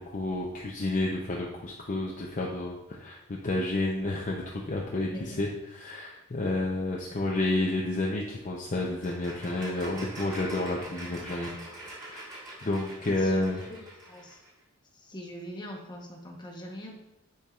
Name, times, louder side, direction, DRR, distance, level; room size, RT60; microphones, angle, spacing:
voice 1, 0.0-5.5 5.7-11.5 11.9-12.2 12.6-13.6, left 2 dB, 35° left, -2 dB, 0.5 m, -30 dB
sound 1, 8.8-14.5, right 1 dB, 20° right, 1.9 m, -44 dB
voice 2, 13.0-14.4 14.9-17.0, equal, 20° left, 0 dB, 0.9 m, -43 dB
10.0 x 4.5 x 2.4 m, 0.96 s
head